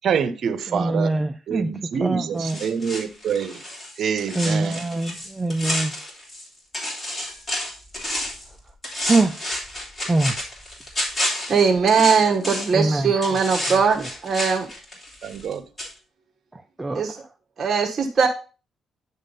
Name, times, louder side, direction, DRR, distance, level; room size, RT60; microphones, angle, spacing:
voice 1, 0.0-1.1 1.5-3.6 4.0-4.7 15.2-15.6, right 7 dB, 60° right, 0.9 m, -26 dB
voice 2, 0.7-1.7 2.0-2.6 4.3-6.0 8.5-8.7 9.0-9.4 10.0-10.4 12.7-13.1 13.7-13.8 16.5-17.3, right 2 dB, 15° right, 0.5 m, -24 dB
sound 1, 2.4-6.5 6.7-8.5 8.8-12.8 13.2-15.5 15.8-15.9, left 1 dB, 25° left, 3.2 m, -30 dB
voice 3, 11.5-14.7 16.9-17.1 17.6-18.3, right 5 dB, 40° right, 1.3 m, -20 dB
9.8 x 3.7 x 5.3 m
cardioid pair, 90°, 0 cm